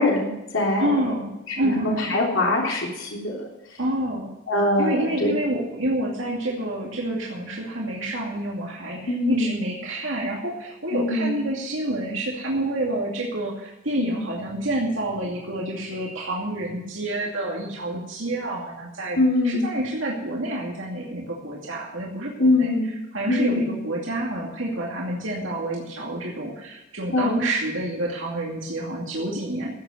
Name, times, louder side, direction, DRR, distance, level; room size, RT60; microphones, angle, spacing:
voice 1, 0.0-1.1 1.5-3.5 4.5-5.4 9.0-9.5 10.9-11.3 14.0-14.2 19.2-19.6 22.4-22.9 23.3-23.7 27.1-27.4, left 2 dB, 75° left, -3 dB, 3.5 m, -23 dB
voice 2, 0.8-2.2 3.8-4.3 4.8-22.7 23.1-29.7, right 1 dB, 75° right, -3 dB, 2.6 m, -28 dB
15.0 x 8.6 x 6.5 m, 0.96 s
head